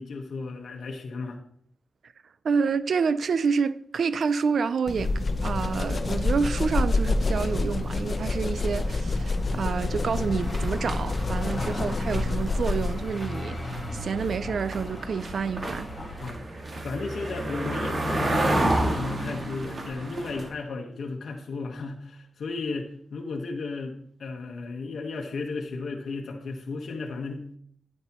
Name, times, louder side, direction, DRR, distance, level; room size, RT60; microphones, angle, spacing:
voice 1, 0.0-1.4 11.6-11.8 16.2-16.5 16.8-27.4, left 3 dB, 75° left, 1.3 m, -34 dB
voice 2, 2.4-15.9, right 5 dB, 70° right, 0.4 m, -28 dB
sound 1, 4.9-13.2, left 2 dB, 45° left, 0.7 m, -27 dB
sound 2, 6.3-16.3, equal, 10° left, 3.5 m, -38 dB
sound 3, 10.4-12.9 13.2-20.5, right 1 dB, 45° right, 2.2 m, -30 dB
10.0 x 9.5 x 3.0 m
cardioid pair, 75°, 0 cm